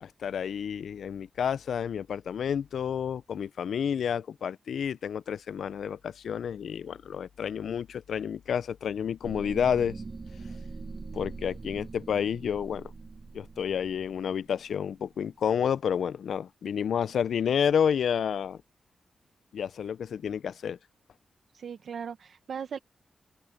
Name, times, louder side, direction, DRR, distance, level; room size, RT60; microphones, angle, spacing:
voice 1, 0.0-10.0 11.1-12.9 13.3-18.6 19.5-20.8, left 8 dB, 85° left, 0.4 m, -30 dB
sound 1, 9.2-15.2, right 4 dB, 45° right, 1.2 m, -43 dB
voice 2, 21.5-22.8, right 7 dB, 75° right, 1.1 m, -38 dB
open air
cardioid pair, 75°, 0 cm